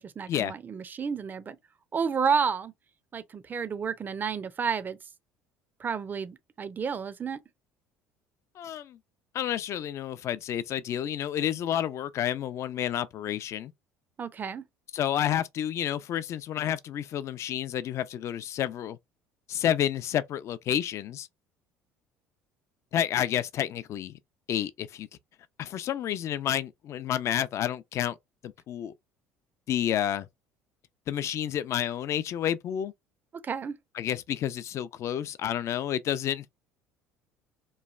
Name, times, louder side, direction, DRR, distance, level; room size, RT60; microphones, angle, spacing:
voice 1, 0.0-1.6 1.9-2.7 3.1-5.0 5.8-7.4 14.2-14.7 33.4-33.8, right 6 dB, 30° right, 0.5 m, -31 dB
voice 2, 8.6-9.0 9.3-13.7 14.9-19.0 19.5-21.3 22.9-24.2 24.5-25.1 25.6-28.2 28.4-28.9 29.7-30.3 31.1-32.9 34.0-36.5, left 10 dB, 50° left, 0.4 m, -30 dB
3.1 x 2.2 x 2.3 m
supercardioid pair, 85°, 6 cm